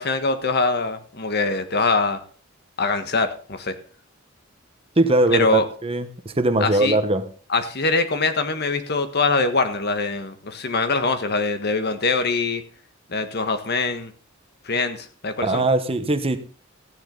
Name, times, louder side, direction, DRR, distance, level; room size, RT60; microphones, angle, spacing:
voice 1, 0.0-2.2 2.8-3.7 5.3-5.6 6.6-7.0 7.5-12.6 13.1-14.1 14.6-15.6, left 3 dB, 55° left, 9 dB, 1.5 m, -23 dB
voice 2, 5.0-7.3 15.4-16.4, right 2 dB, 30° right, 10 dB, 1.1 m, -20 dB
15.0 x 10.0 x 3.9 m, 0.39 s
head